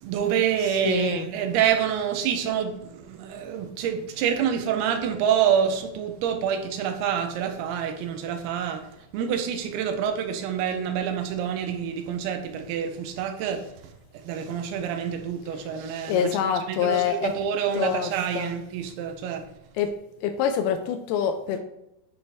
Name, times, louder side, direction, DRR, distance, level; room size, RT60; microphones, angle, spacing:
voice 1, 0.0-16.3 16.7-19.5, right 8 dB, 85° right, 5 dB, 2.7 m, -27 dB
voice 2, 0.8-1.3 16.0-17.3 17.8-18.1 18.4-18.5 19.8-19.9 20.2-21.6, left 8 dB, 85° left, 6 dB, 2.6 m, -25 dB
10.5 x 4.2 x 3.4 m, 0.83 s
omnidirectional pair, 4.4 m